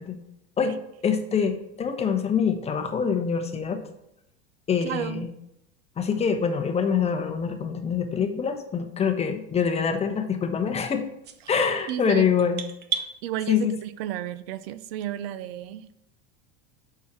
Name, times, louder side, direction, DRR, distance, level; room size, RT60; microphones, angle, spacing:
voice 1, 1.0-3.8 4.7-5.3 6.0-11.0 11.5-12.6 12.9-13.0 13.5-13.7, left 6 dB, 20° left, 6 dB, 0.9 m, -25 dB
voice 2, 4.8-5.3 11.9-12.3 13.2-15.9, right 12 dB, 65° right, 13 dB, 0.7 m, -32 dB
sound 1, 11.2-13.1, right 7 dB, 35° right, 0.9 m, -33 dB
7.1 x 6.0 x 6.0 m, 0.82 s
supercardioid pair, 135°, 31 cm